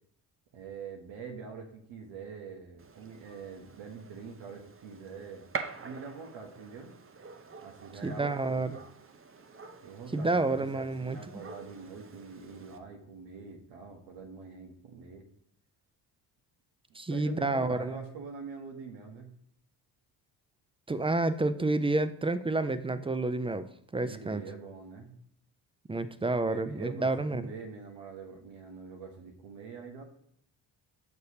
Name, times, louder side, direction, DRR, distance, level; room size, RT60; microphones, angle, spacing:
voice 1, 0.5-5.5 5.8-6.9 7.6-8.8 9.8-15.3 17.1-19.3 24.0-25.1 26.4-30.0, right 5 dB, 70° right, 2 dB, 1.2 m, -44 dB
Gunshot gunfire, 2.8-12.8, right 5 dB, 30° right, 0.8 m, -46 dB
voice 2, 8.0-8.8 10.1-11.2 17.0-18.0 20.9-23.7 23.9-24.4 25.9-27.4, right 2 dB, 10° right, 12 dB, 0.4 m, -29 dB
6.8 x 6.3 x 2.8 m, 0.67 s
supercardioid pair, 60°, 46 cm